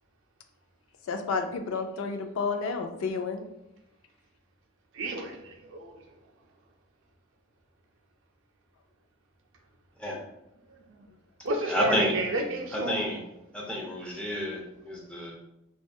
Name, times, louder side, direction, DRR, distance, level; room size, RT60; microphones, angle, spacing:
voice 1, 1.1-3.5, left 4 dB, 70° left, 6 dB, 0.3 m, -31 dB
voice 2, 4.9-5.9 11.4-13.0, right 2 dB, 65° right, 1 dB, 0.5 m, -31 dB
voice 3, 11.6-12.1 12.7-13.2 13.5-15.4, left 1 dB, 5° left, -2 dB, 0.5 m, -30 dB
2.6 x 2.2 x 2.2 m, 0.87 s
head